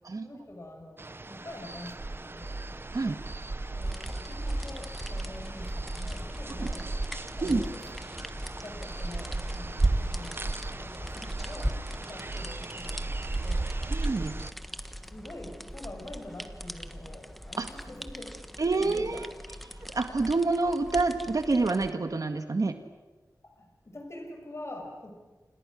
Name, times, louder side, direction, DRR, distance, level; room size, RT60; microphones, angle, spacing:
voice 1, 0.2-2.6 3.0-3.2 3.7-7.0 7.4-7.8 8.3-13.6 14.3-14.5 15.1-18.3 18.8-19.3 23.4-25.1, left 1 dB, 40° left, 2 dB, 6.1 m, -45 dB
sound 1, 1.0-14.5, right 2 dB, 35° right, 1.0 m, -34 dB
sound 2, 3.8-21.9, equal, ahead, 1.4 m, -41 dB
voice 2, 13.9-14.3 17.6-17.7 18.6-19.3 19.9-22.7, right 3 dB, 60° right, 7 dB, 1.8 m, -27 dB
30.0 x 27.5 x 6.5 m, 1.2 s
wide cardioid pair, 90°, 7 cm